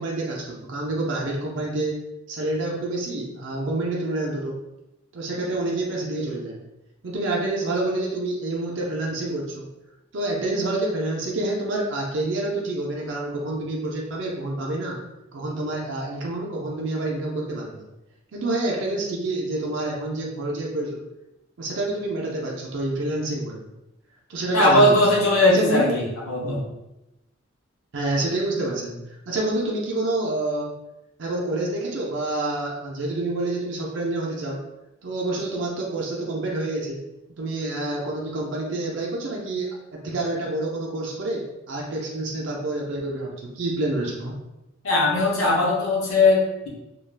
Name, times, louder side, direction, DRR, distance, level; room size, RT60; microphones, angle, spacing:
voice 1, 0.0-2.0 2.3-4.6 5.1-6.6 7.0-9.7 10.1-15.0 15.3-17.9 18.3-21.0 21.6-23.7 24.3-25.0 25.5-25.9 26.4-26.6 27.9-29.0 29.3-30.7 31.2-34.6 35.0-37.0 37.4-44.3, right 2 dB, 60° right, -2 dB, 0.5 m, -27 dB
voice 2, 24.5-26.6 44.8-46.7, left 2 dB, 85° left, -3 dB, 0.8 m, -19 dB
2.3 x 2.3 x 3.3 m, 0.95 s
head